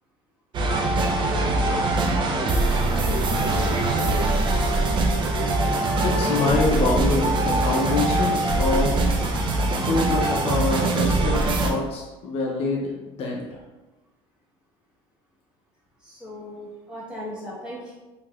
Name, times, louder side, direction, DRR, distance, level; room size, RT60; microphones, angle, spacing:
sound 1, 0.5-11.7, right 2 dB, 40° right, 0.5 m, -22 dB
voice 1, 6.0-9.0 9.8-13.6, left 3 dB, 50° left, -2 dB, 0.6 m, -25 dB
voice 2, 16.0-18.0, equal, 5° right, -8 dB, 1.3 m, -37 dB
3.0 x 2.8 x 2.3 m, 1.1 s
supercardioid pair, 105°, 13 cm